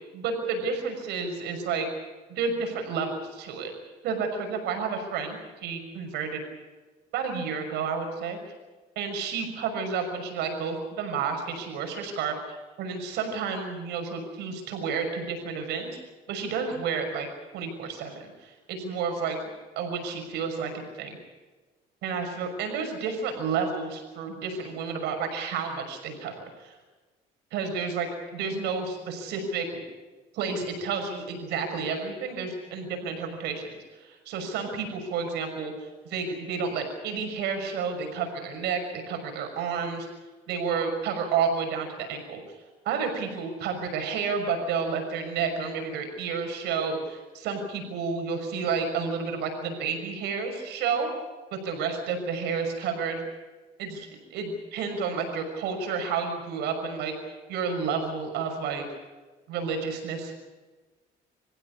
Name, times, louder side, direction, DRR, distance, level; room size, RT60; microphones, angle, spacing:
voice 1, 0.1-1.9 2.3-3.7 4.0-6.4 7.1-8.4 9.0-16.0 16.3-17.3 17.5-19.4 19.8-21.2 22.0-26.7 27.5-29.8 30.3-40.1 40.5-42.4 42.8-51.1 51.5-53.2 53.8-58.9 59.5-60.3, right 5 dB, 85° right, 4 dB, 6.1 m, -31 dB
27.0 x 15.5 x 8.6 m, 1.3 s
cardioid pair, 110°, 17 cm